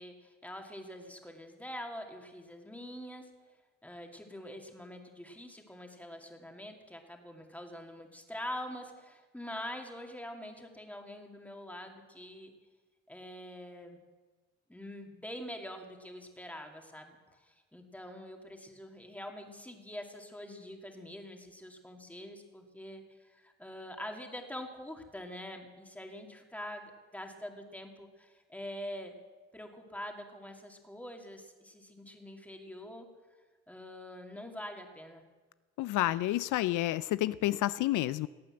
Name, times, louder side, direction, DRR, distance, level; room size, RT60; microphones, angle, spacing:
voice 1, 0.0-3.3 3.8-12.5 13.1-14.0 14.7-29.2 29.5-33.1 33.7-35.2, left 1 dB, 5° left, 3 dB, 2.4 m, -45 dB
voice 2, 35.8-38.3, left 15 dB, 85° left, 16 dB, 0.5 m, -29 dB
18.0 x 8.6 x 7.8 m, 1.3 s
cardioid pair, 90°, 30 cm